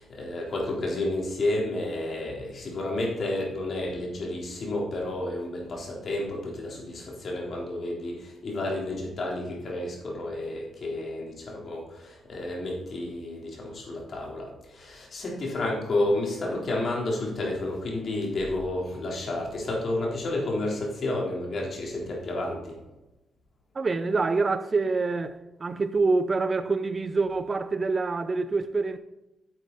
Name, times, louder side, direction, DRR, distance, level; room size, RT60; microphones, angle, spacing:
voice 1, 0.0-22.8, left 2 dB, 55° left, 3.6 m, -31 dB
voice 2, 23.7-29.0, right 3 dB, 35° right, 0.6 m, -26 dB
9.6 x 8.1 x 4.0 m
cardioid pair, 95°, 0 cm